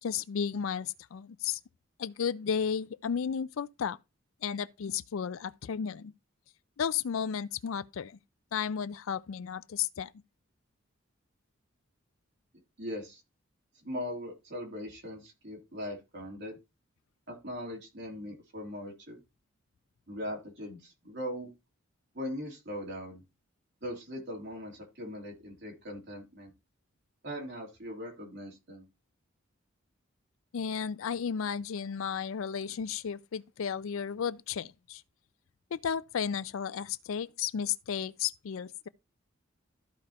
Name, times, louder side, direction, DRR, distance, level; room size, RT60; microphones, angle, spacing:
voice 1, 0.0-1.6 2.0-4.0 4.4-6.1 6.8-8.2 8.5-10.1 30.5-35.0 35.7-38.9, left 7 dB, 80° left, 0.4 m, -33 dB
voice 2, 12.8-13.2 13.8-16.6 17.3-19.2 20.1-21.5 22.1-23.2 23.8-26.5 27.2-28.9, equal, 55° right, 3.1 m, -40 dB
14.0 x 4.9 x 2.9 m
head